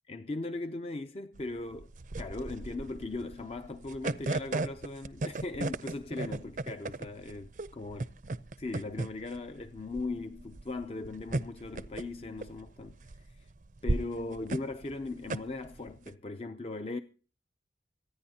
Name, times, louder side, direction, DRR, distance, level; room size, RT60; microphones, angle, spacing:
voice 1, 0.1-8.1 8.6-13.0 13.8-17.0, left 2 dB, 35° left, 0.5 m, -38 dB
sound 1, 1.4-16.1, right 2 dB, 45° right, 0.5 m, -36 dB
25.5 x 9.3 x 2.8 m
head